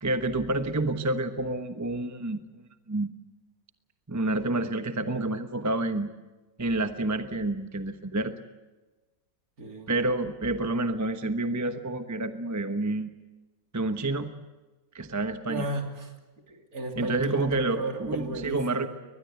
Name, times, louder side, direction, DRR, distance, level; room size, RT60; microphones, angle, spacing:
voice 1, 0.0-3.1 4.1-6.1 6.6-8.3 9.9-13.1 13.7-14.3 14.9-15.7 17.0-18.9, right 2 dB, 15° right, 8 dB, 0.8 m, -29 dB
voice 2, 9.6-9.9 15.5-16.1 16.5-18.9, right 2 dB, 50° right, 3 dB, 3.3 m, -34 dB
22.5 x 20.5 x 8.1 m, 1.2 s
omnidirectional pair, 1.9 m